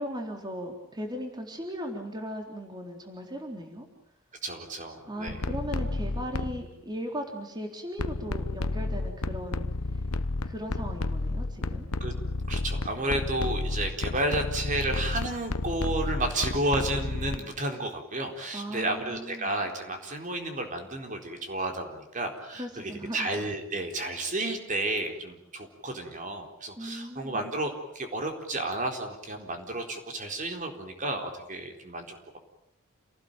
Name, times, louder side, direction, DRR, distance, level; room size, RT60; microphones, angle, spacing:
voice 1, 0.0-3.9 5.1-9.7 10.4-11.9 18.5-19.5 22.5-23.3 26.8-27.5, equal, 20° right, 3 dB, 3.8 m, -37 dB
voice 2, 4.4-5.4 12.0-12.1 12.5-32.4, right 2 dB, 35° right, 4 dB, 4.1 m, -32 dB
sound 1, 5.3-6.7 8.0-17.4, left 2 dB, 85° left, 1.1 m, -31 dB
29.0 x 19.0 x 9.1 m, 0.76 s
head